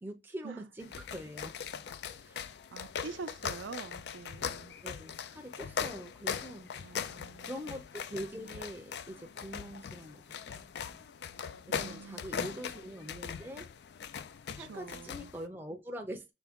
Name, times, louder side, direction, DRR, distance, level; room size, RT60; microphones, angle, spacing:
voice 1, 0.0-1.6 2.2-2.4 4.8-6.7 7.4-11.0 11.7-13.7 14.5-16.3, equal, 10° right, 0.5 m, -44 dB
sound 1, 0.8-15.5, left 7 dB, 60° left, 0.3 m, -40 dB
voice 2, 2.7-4.8 6.8-7.6 11.7-12.6 14.5-15.3, right 5 dB, 80° right, 0.5 m, -46 dB
5.7 x 2.3 x 3.5 m
head